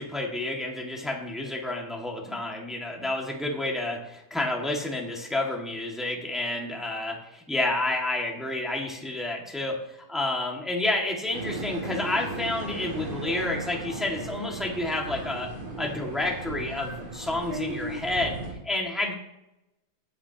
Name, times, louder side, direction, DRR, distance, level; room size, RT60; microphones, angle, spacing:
voice 1, 0.0-15.5 15.8-18.3 18.6-19.1, left 2 dB, ahead, -1 dB, 0.9 m, -30 dB
sound 1, 11.3-18.5, right 2 dB, 55° right, 3.4 m, -36 dB
17.5 x 8.5 x 2.9 m, 0.89 s
omnidirectional pair, 3.7 m